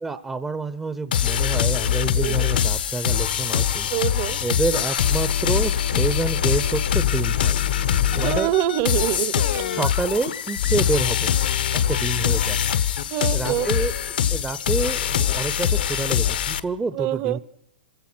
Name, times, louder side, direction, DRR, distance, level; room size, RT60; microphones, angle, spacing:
voice 1, 0.0-3.9 4.4-7.6 8.1-8.5 9.7-11.3 11.9-12.6 13.3-13.9 14.3-17.4, right 3 dB, 10° right, 12 dB, 0.7 m, -28 dB
sound 1, 1.1-16.6, left 9 dB, 75° left, 1.2 m, -23 dB
voice 2, 3.9-4.4 8.2-9.7 13.1-13.7 16.9-17.4, right 14 dB, 40° right, 19 dB, 0.8 m, -25 dB
27.0 x 16.0 x 6.1 m, 0.86 s
hypercardioid pair, 140°, 5 cm